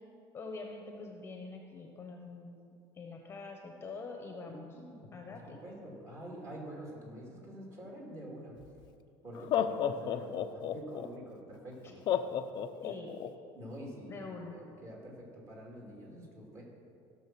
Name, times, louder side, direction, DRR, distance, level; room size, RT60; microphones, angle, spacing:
voice 1, 0.3-2.6 2.9-4.7 5.1-5.6 12.8-13.1 14.1-14.6, left 3 dB, 20° left, 2 dB, 1.1 m, -45 dB
voice 2, 4.5-8.6 9.2-12.0 13.5-16.6, equal, 25° right, -2 dB, 2.7 m, -47 dB
Laughter, 8.6-8.7 9.3-11.1 12.1-13.3, left 10 dB, 40° left, 0.6 m, -31 dB
16.5 x 6.5 x 6.0 m, 2.5 s
cardioid pair, 150°, 11 cm